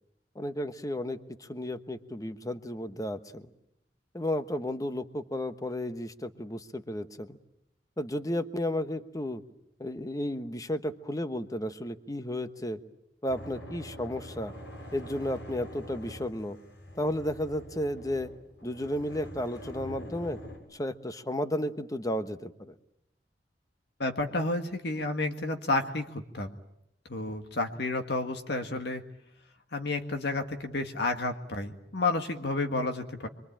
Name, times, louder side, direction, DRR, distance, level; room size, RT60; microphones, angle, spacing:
voice 1, 0.3-3.5 4.1-7.4 8.0-9.4 9.8-12.8 13.2-14.5 14.9-16.6 17.0-18.3 18.6-20.4 20.7-22.7, left 1 dB, 20° left, 10 dB, 1.1 m, -33 dB
sound 1, 13.3-20.6, equal, 85° left, 7.3 m, -45 dB
voice 2, 24.0-26.5 27.1-29.0 29.7-33.3, left 2 dB, 65° left, 5 dB, 1.8 m, -31 dB
26.5 x 23.5 x 8.8 m, 0.83 s
head